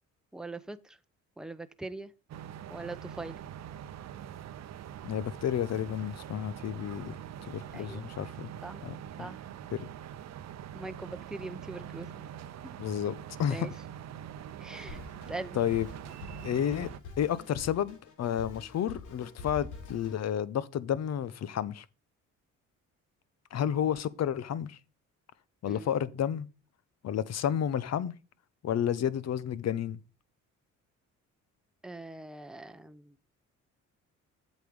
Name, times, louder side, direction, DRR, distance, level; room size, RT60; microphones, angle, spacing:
voice 1, 0.3-1.0 1.4-2.1 2.7-3.4 7.7-8.1 8.6-8.8 9.2-9.4 10.7-12.3 12.6-12.8 13.5-13.7 14.6-15.0 15.3-15.6 25.7-25.9 31.8-33.1, right 2 dB, ahead, 0.8 m, -42 dB
sound 1, 2.3-17.0, right 10 dB, 60° right, 0.7 m, -44 dB
voice 2, 5.0-7.2 7.5-8.5 8.8-9.3 9.7-9.9 12.8-13.1 13.4-13.7 14.7-14.9 15.6-15.9 16.4-16.9 17.2-21.8 23.5-24.8 25.6-26.5 27.0-28.1 28.6-30.0, left 9 dB, 60° left, 0.9 m, -31 dB
Drum kit, 14.9-20.3, left 4 dB, 90° left, 4.4 m, -46 dB
8.3 x 6.4 x 5.3 m
cardioid pair, 90°, 30 cm